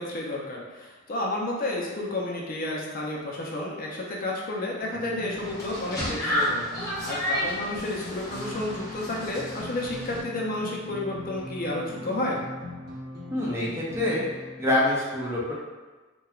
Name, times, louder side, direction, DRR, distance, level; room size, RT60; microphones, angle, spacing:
voice 1, 0.0-12.4, left 1 dB, 45° left, -2 dB, 0.4 m, -31 dB
Guitar notes, 4.8-14.8, left 1 dB, 55° right, 0.8 m, -41 dB
sound 1, 5.3-10.2, equal, 15° left, 0.8 m, -31 dB
voice 2, 13.3-14.3 14.6-15.5, left 1 dB, 15° right, -5 dB, 0.4 m, -25 dB
3.0 x 2.2 x 2.3 m, 1.3 s
head